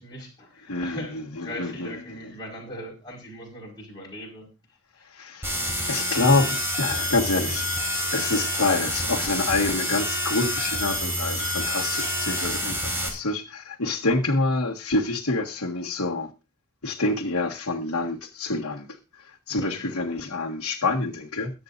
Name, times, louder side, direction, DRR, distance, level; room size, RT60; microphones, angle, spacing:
voice 1, 0.0-4.5 5.0-5.1 8.3-8.4 19.5-19.8, equal, 20° left, -4 dB, 4.8 m, -40 dB
voice 2, 0.7-1.9 5.1-5.5 5.9-7.7 8.1-16.3 16.8-19.0 19.5-21.5, left 3 dB, 80° left, -2 dB, 1.7 m, -27 dB
sound 1, 5.4-13.1, equal, 10° right, 4.8 m, -27 dB
22.5 x 8.9 x 2.6 m, 0.29 s
head